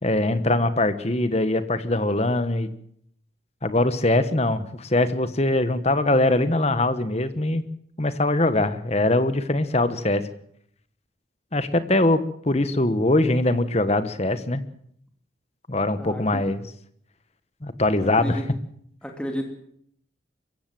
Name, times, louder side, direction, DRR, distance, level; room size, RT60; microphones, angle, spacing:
voice 1, 0.0-2.7 3.6-7.6 8.0-10.3 11.5-14.6 15.7-16.6 17.6-18.4, left 2 dB, 35° left, 12 dB, 1.3 m, -22 dB
voice 2, 16.0-16.4 18.0-18.5 19.0-19.4, equal, 5° left, 2 dB, 2.7 m, -32 dB
23.5 x 15.5 x 7.7 m, 0.69 s
head